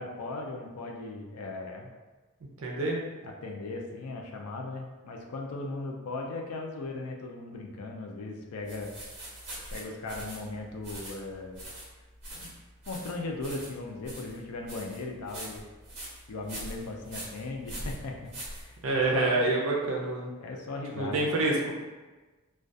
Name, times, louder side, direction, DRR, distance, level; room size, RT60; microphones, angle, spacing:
voice 1, 0.0-1.9 3.2-8.9 9.7-11.6 12.3-12.5 12.9-15.6 16.3-19.5 20.4-21.3, left 2 dB, 80° left, 1 dB, 0.4 m, -38 dB
voice 2, 2.6-3.0 18.8-20.3 21.0-21.7, right 2 dB, 65° right, -2 dB, 0.5 m, -27 dB
sound 1, 8.7-19.1, right 1 dB, 30° right, 1.1 m, -43 dB
2.3 x 2.2 x 2.5 m, 1.2 s
head